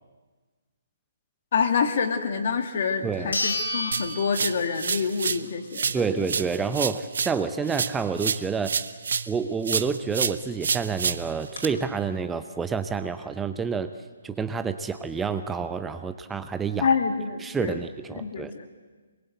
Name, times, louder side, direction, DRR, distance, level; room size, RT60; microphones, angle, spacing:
voice 1, 1.5-6.1 16.8-17.8 18.1-18.7, left 5 dB, 55° left, 7 dB, 2.5 m, -27 dB
sound 1, 2.5-2.6 3.3-5.1 5.5-5.6 10.2-10.3 10.5-10.6 11.1-11.6, left 2 dB, 80° left, 7.2 m, -31 dB
voice 2, 3.0-3.4 5.9-8.7 9.3-13.9 14.2-16.9 17.4-18.5, right 5 dB, 10° right, 9 dB, 0.8 m, -28 dB
sound 2, 3.9-5.5 5.7-9.4 9.7-11.7, right 6 dB, 65° right, 0.9 m, -29 dB
23.0 x 21.5 x 8.1 m, 1.4 s
figure-of-eight pair, 140°, 0 cm